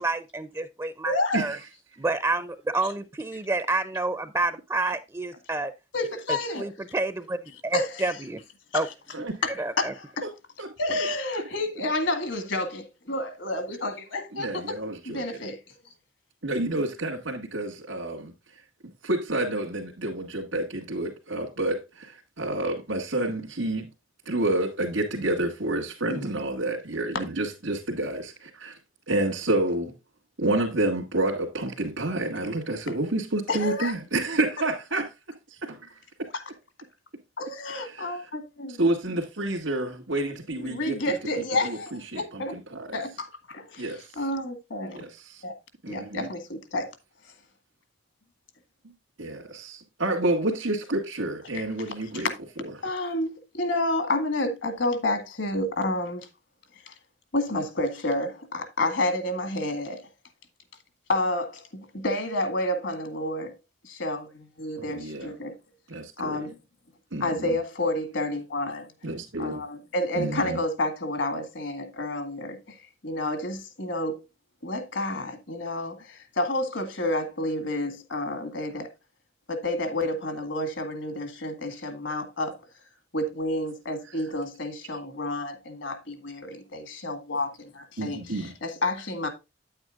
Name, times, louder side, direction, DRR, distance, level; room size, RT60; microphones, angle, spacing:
voice 1, 0.0-1.6 2.0-5.7 6.3-8.4 8.7-8.9 9.6-9.9, right 2 dB, 15° right, 0.4 m, -29 dB
voice 2, 1.0-1.4 2.8-2.9 5.9-6.7 7.7-8.1 8.7-8.8 9.4-10.3 10.8-14.8 15.1-15.8 26.1-26.2 32.9-33.0 33.5-33.9 36.3-36.4 37.4-38.8 40.6-42.5 42.9-45.1 45.4-45.5 45.9-46.9 51.5-51.6 52.1-52.3 52.8-56.3 56.9-57.0 57.3-60.0 61.1-63.5 63.8-65.5 66.2-66.5 67.2-68.9 69.4-72.8 73.0-74.2 74.6-78.9 79.5-82.6 83.1-89.3, left 1 dB, 70° left, 1.9 m, -30 dB
voice 3, 14.3-15.2 16.4-18.3 19.0-23.9 24.3-28.8 29.1-29.9 30.4-35.1 35.5-36.3 37.7-38.2 38.8-41.0 41.6-43.0 43.8-44.1 44.9-45.4 45.8-46.3 49.2-52.3 64.8-65.3 65.9-66.4 67.1-67.5 69.0-69.6 70.2-70.6 88.0-88.5, right 2 dB, 85° right, 2.0 m, -29 dB
9.2 x 8.8 x 2.4 m
head